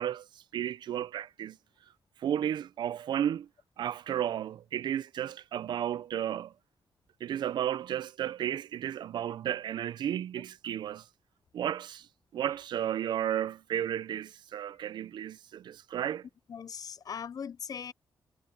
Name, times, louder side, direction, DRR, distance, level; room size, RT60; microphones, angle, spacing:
voice 1, 0.0-1.6 2.2-3.5 3.8-6.5 7.2-11.1 11.5-12.1 12.3-16.2, right 10 dB, 80° right, 0.6 m, -33 dB
voice 2, 16.5-17.9, left 7 dB, 55° left, 0.6 m, -39 dB
cardioid pair, 90°, 8 cm